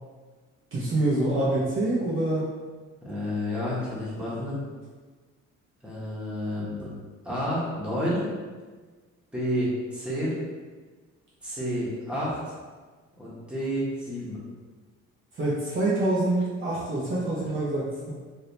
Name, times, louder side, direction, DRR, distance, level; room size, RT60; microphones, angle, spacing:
voice 1, 0.7-2.5 15.4-18.1, right 2 dB, 45° right, -7 dB, 0.7 m, -26 dB
voice 2, 3.0-4.6 5.8-6.9 7.2-8.3 9.3-10.4 11.4-12.4 13.2-14.4 17.4-17.5, equal, 5° right, -8 dB, 1.3 m, -30 dB
3.3 x 2.7 x 2.7 m, 1.4 s
cardioid pair, 90°, 30 cm